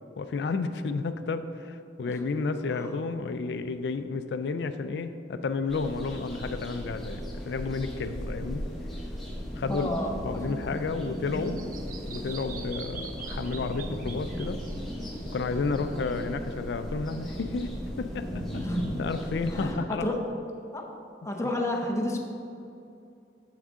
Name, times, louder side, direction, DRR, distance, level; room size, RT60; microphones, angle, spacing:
voice 1, 0.2-8.7 9.6-9.9 10.2-11.6 12.1-14.6 15.3-17.7 18.0-20.1, left 4 dB, 70° left, 10 dB, 0.4 m, -31 dB
sound 1, 5.7-19.7, equal, ahead, 1.1 m, -36 dB
voice 2, 9.7-10.2 10.5-10.6 18.5-18.8 19.5-20.3 20.7-20.9 21.2-22.2, left 1 dB, 15° left, 1 dB, 0.7 m, -31 dB
Bird vocalization bird call bird song, 10.3-16.2, right 5 dB, 50° right, 0.6 m, -45 dB
7.2 x 6.2 x 3.6 m, 2.7 s
head